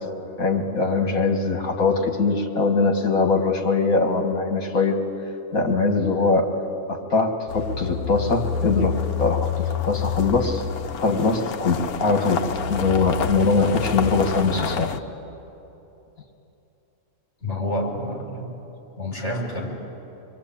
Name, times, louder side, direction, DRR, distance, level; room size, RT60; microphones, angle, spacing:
voice 1, 0.4-5.0 5.5-6.5 6.9-9.5 9.9-10.6 11.0-12.4 12.7-14.9, left 3 dB, 70° left, 3 dB, 2.5 m, -22 dB
sound 1, 7.5-15.0, left 7 dB, 85° left, 1.4 m, -28 dB
voice 2, 17.4-18.5 19.0-19.7, left 1 dB, 50° left, 0 dB, 4.9 m, -28 dB
26.0 x 22.0 x 8.8 m, 3.0 s
omnidirectional pair, 1.5 m